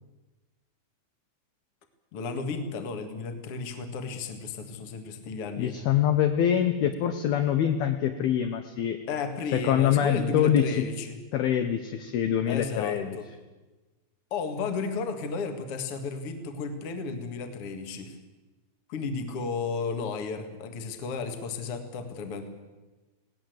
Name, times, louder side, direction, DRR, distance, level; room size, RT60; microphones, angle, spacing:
voice 1, 2.1-5.8 9.1-11.2 12.4-13.3 14.3-18.2 18.9-22.5, left 4 dB, 50° left, 7 dB, 1.8 m, -33 dB
voice 2, 5.6-9.0 9.5-10.8 11.3-13.2, left 9 dB, 75° left, 7 dB, 2.3 m, -25 dB
19.5 x 18.0 x 7.9 m, 1.2 s
omnidirectional pair, 5.6 m